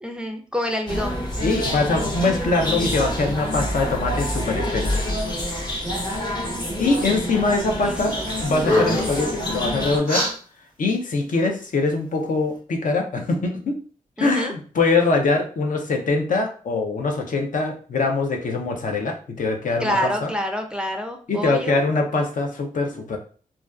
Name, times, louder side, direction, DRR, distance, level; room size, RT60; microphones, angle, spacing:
voice 1, 0.0-1.2 7.7-8.2 14.2-14.5 19.8-21.8, equal, 5° right, 3 dB, 0.4 m, -27 dB
sound 1, 0.9-10.0, equal, 30° left, 0.7 m, -27 dB
voice 2, 1.4-4.9 6.8-8.1 8.4-10.3 10.8-13.7 14.2-20.3 21.3-23.2, left 3 dB, 60° left, 2 dB, 0.5 m, -23 dB
sound 2, 8.0-8.3 8.6-9.2 10.1-10.3, left 1 dB, 80° left, 1.4 m, -23 dB
2.4 x 2.2 x 2.3 m, 0.41 s
cardioid pair, 65°, 15 cm